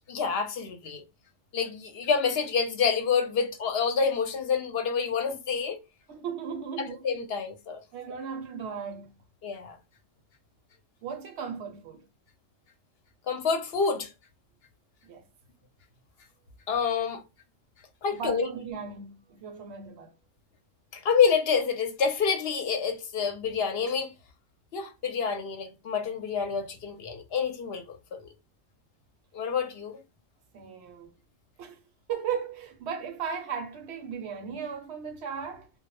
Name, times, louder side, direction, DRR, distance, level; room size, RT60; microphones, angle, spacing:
voice 1, 0.1-1.0 1.5-5.8 7.0-7.8 9.4-9.8 13.3-14.1 16.7-17.2 18.0-18.5 20.9-24.1 24.7-28.3 29.3-30.0, left 6 dB, 60° left, 0.7 m, -28 dB
voice 2, 6.1-7.2 7.9-9.2 11.0-12.0 15.1-15.2 18.1-20.1 30.5-31.1 31.6-31.8 32.1-35.7, right 7 dB, 65° right, 0.8 m, -36 dB
2.2 x 2.0 x 2.9 m
omnidirectional pair, 1.3 m